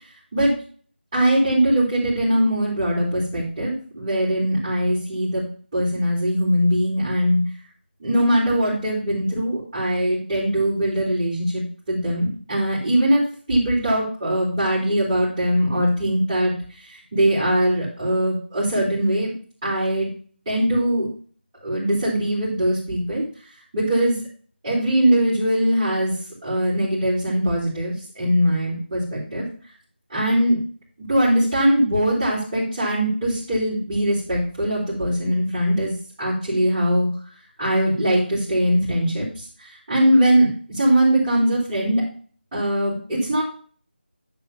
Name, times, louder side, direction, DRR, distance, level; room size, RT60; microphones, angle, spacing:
voice 1, 1.1-5.4 5.7-7.4 8.0-13.2 13.5-16.5 16.8-19.3 19.6-20.1 20.5-21.1 21.6-23.2 23.7-24.2 24.6-26.1 26.4-29.4 30.1-30.6 31.1-35.9 36.2-37.1 37.6-42.0 42.5-43.4, equal, 20° right, -10 dB, 3.7 m, -21 dB
10.5 x 3.9 x 5.8 m, 0.43 s
figure-of-eight pair, 170°, 6 cm